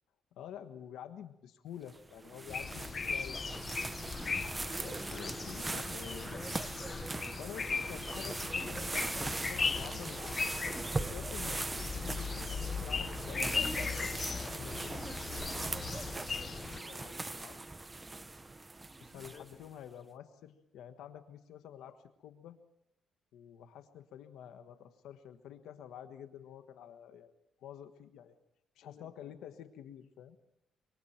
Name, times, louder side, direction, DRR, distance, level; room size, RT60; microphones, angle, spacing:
voice 1, 0.4-3.4 4.8-7.0 7.4-10.5 10.8-15.2 19.0-22.6 23.3-27.3 27.6-28.3 28.7-30.4, left 9 dB, 85° left, 8 dB, 1.5 m, -49 dB
sound 1, 1.9-19.7, right 2 dB, 20° right, 0.9 m, -40 dB
sound 2, 2.5-16.8, left 5 dB, 40° left, 0.8 m, -38 dB
sound 3, 13.1-16.8, left 2 dB, 20° left, 2.7 m, -51 dB
voice 2, 15.7-17.6 19.1-19.7 21.8-22.0 28.8-29.1, left 8 dB, 60° left, 8 dB, 1.6 m, -58 dB
26.0 x 24.5 x 4.5 m, 0.81 s
cardioid pair, 90°, 0 cm